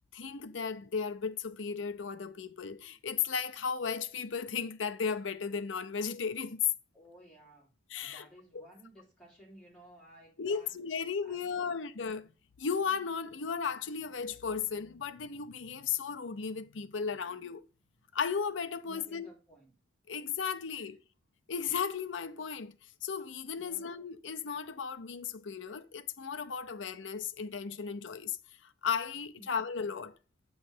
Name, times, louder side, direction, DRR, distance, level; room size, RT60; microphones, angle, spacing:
voice 1, 0.1-6.7 7.9-8.3 8.5-8.7 10.4-12.3 12.6-17.6 18.1-19.3 20.1-21.0 21.5-22.8 23.0-28.4 28.6-30.1, left 6 dB, 85° left, 0.6 m, -35 dB
voice 2, 6.9-7.7 8.0-10.8 11.2-11.7 18.8-19.7 20.7-20.8 23.6-23.8 29.4-29.5, right 1 dB, 5° left, 3.4 m, -56 dB
8.4 x 3.2 x 6.5 m
head